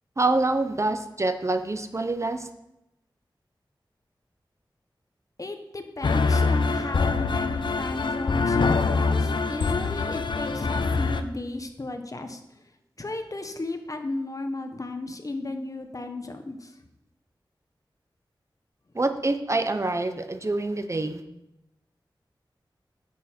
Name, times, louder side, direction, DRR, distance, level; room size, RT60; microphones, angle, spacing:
voice 1, 0.2-2.5 18.9-21.2, right 2 dB, 35° right, 8 dB, 0.7 m, -26 dB
voice 2, 5.4-12.7 13.0-16.8, left 2 dB, 40° left, 7 dB, 1.0 m, -34 dB
sound 1, 6.0-11.2, left 4 dB, 70° left, 0.6 m, -24 dB
9.1 x 7.4 x 4.4 m, 0.87 s
wide cardioid pair, 75°, 8 cm